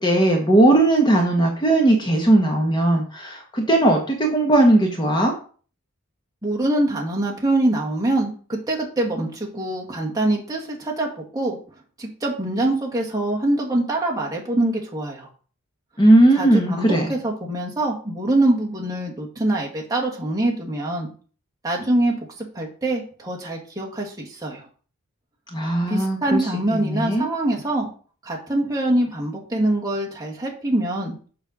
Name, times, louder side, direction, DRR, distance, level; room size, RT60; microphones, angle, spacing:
voice 1, 0.0-5.3 16.0-17.1 25.5-26.4 26.7-27.3, right 1 dB, 20° left, 1 dB, 1.3 m, -18 dB
voice 2, 6.4-11.6 12.0-15.3 16.3-21.1 21.6-22.1 22.5-24.6 25.9-27.9 28.2-31.2, right 1 dB, 15° right, -2 dB, 1.9 m, -24 dB
6.9 x 4.5 x 6.4 m, 0.41 s
head